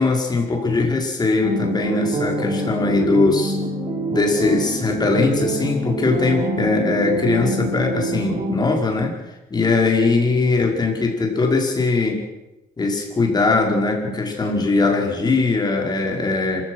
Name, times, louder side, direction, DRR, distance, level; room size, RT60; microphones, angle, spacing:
voice 1, 0.0-3.6 4.1-9.2 9.5-12.3 12.8-16.6, left 3 dB, 25° left, 2 dB, 5.0 m, -20 dB
sound 1, 1.4-8.5, right 2 dB, 40° right, 5.1 m, -25 dB
26.5 x 16.0 x 6.3 m, 0.98 s
cardioid pair, 110°, 17 cm